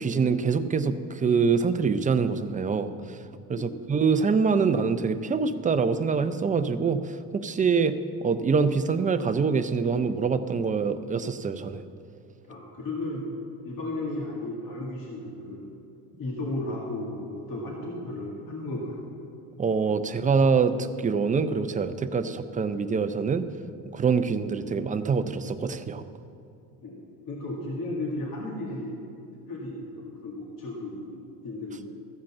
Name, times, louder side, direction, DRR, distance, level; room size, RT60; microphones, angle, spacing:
voice 1, 0.0-3.2 3.5-7.9 8.2-11.8 19.6-23.5 23.9-26.0, right 5 dB, 20° right, 10 dB, 0.5 m, -25 dB
voice 2, 12.5-13.3 13.6-15.7 16.2-19.1 26.8-29.0 29.5-31.8, left 2 dB, 55° left, -3 dB, 2.0 m, -34 dB
14.5 x 5.1 x 7.2 m, 2.6 s
cardioid pair, 100°, 40 cm